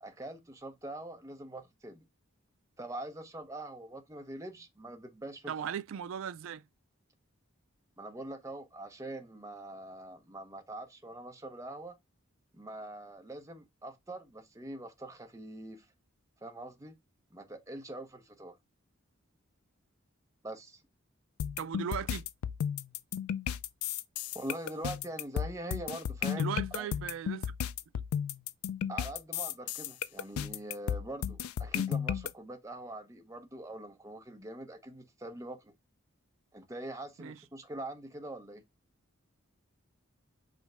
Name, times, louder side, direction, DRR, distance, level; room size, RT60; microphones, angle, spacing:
voice 1, 0.0-2.0 2.8-5.5 8.0-12.0 12.5-15.9 16.4-16.9 17.3-18.6 20.4-20.8 24.3-26.9 28.9-35.7 36.5-38.6, right 1 dB, 15° right, 0.7 m, -43 dB
voice 2, 5.5-6.6 21.6-22.3 26.3-27.6 37.2-37.4, right 8 dB, 65° right, 0.3 m, -37 dB
sound 1, 21.4-32.3, left 8 dB, 85° left, 0.3 m, -34 dB
5.0 x 2.1 x 4.8 m
head